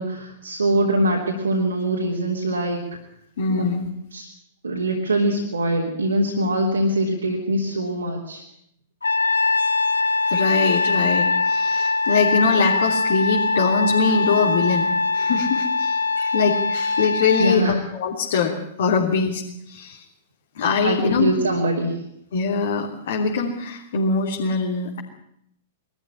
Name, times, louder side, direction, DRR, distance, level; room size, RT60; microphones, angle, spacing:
voice 1, 0.0-2.8 3.5-3.6 4.1-4.3 4.6-8.4 17.4-17.8 20.8-22.0, right 1 dB, 80° right, -1 dB, 3.2 m, -23 dB
voice 2, 3.4-3.9 10.3-20.0 20.5-21.3 22.3-25.0, left 5 dB, 60° left, -2 dB, 3.1 m, -23 dB
Trumpet, 9.0-17.6, left 3 dB, 80° left, 1.1 m, -22 dB
21.5 x 13.5 x 9.9 m, 0.77 s
figure-of-eight pair, 105°, 0 cm